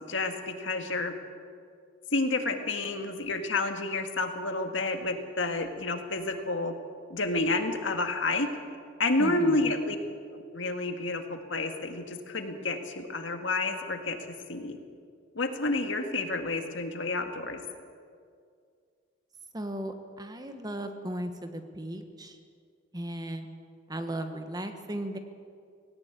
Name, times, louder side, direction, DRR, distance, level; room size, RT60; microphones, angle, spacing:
voice 1, 0.1-1.1 2.1-6.7 7.1-8.5 9.0-10.0 10.3-14.2 14.5-14.8 15.4-17.6, left 2 dB, 75° left, 5 dB, 1.9 m, -30 dB
voice 2, 9.2-9.7 19.5-22.3 22.9-23.5 23.9-25.2, right 1 dB, 20° right, 7 dB, 1.3 m, -36 dB
18.0 x 18.0 x 8.4 m, 2.2 s
head